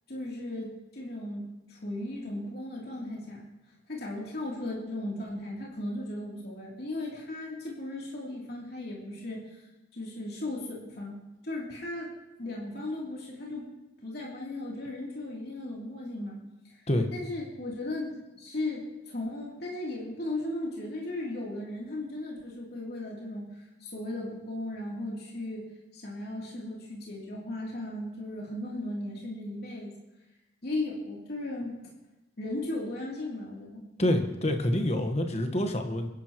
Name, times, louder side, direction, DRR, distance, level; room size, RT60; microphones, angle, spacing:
voice 1, 0.1-3.5 3.9-9.6 9.9-12.1 12.4-13.7 14.0-16.4 16.7-16.8 17.1-29.9 30.6-31.8 32.4-33.9, left 1 dB, 55° left, -4 dB, 3.0 m, -36 dB
voice 2, 34.0-36.1, left 1 dB, 35° left, 5 dB, 1.3 m, -27 dB
26.5 x 11.0 x 3.0 m, 1.0 s
head